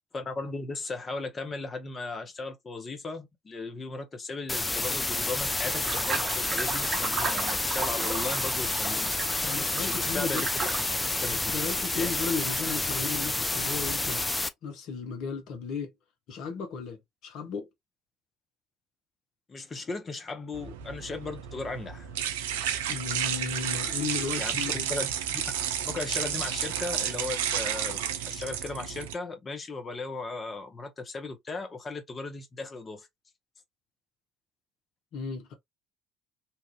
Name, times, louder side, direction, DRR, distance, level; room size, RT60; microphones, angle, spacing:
voice 1, 0.1-9.1 9.8-10.5 11.2-11.4 11.9-12.1 19.5-22.1 24.4-24.6 24.9-25.1 25.8-33.1, left 3 dB, 30° left, 0.9 m, -36 dB
sound 1, 4.5-14.5, left 2 dB, 15° left, 0.5 m, -29 dB
sound 2, 5.6-10.8, right 4 dB, 40° right, 0.9 m, -35 dB
voice 2, 9.4-10.5 11.3-14.2 14.6-15.9 16.3-17.7 22.9-24.9 35.1-35.5, left 5 dB, 60° left, 1.0 m, -35 dB
sound 3, 20.5-29.1, right 9 dB, 75° right, 0.3 m, -32 dB
2.9 x 2.5 x 2.3 m
figure-of-eight pair, 55°, 0 cm